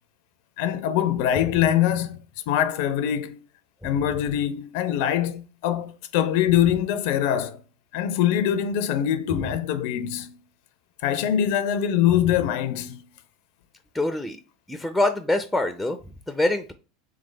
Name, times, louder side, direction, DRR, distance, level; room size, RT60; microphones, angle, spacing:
voice 1, 0.6-2.2 2.5-3.4 3.8-7.6 7.9-10.4 11.0-13.1, left 10 dB, 65° left, 0.4 m, -23 dB
voice 2, 13.9-14.4 14.7-16.7, left 2 dB, ahead, 0.5 m, -25 dB
3.5 x 3.3 x 3.2 m
hypercardioid pair, 85°, 0 cm